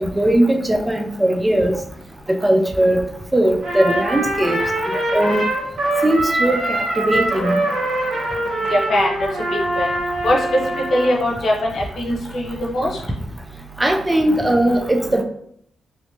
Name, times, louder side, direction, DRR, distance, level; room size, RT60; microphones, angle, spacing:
voice 1, 0.0-1.8 2.3-3.0 3.3-4.6 5.1-5.4 6.0-6.8 7.0-7.6 13.8-15.2, right 1 dB, 15° right, 4 dB, 0.4 m, -18 dB
Trumpet, 3.6-11.2, right 1 dB, 70° right, 1.0 m, -23 dB
voice 2, 8.4-9.1 9.7-9.9 10.2-10.4 10.9-13.0, left 1 dB, 70° left, -3 dB, 0.9 m, -21 dB
3.1 x 2.8 x 2.8 m, 0.67 s
cardioid pair, 75°, 0 cm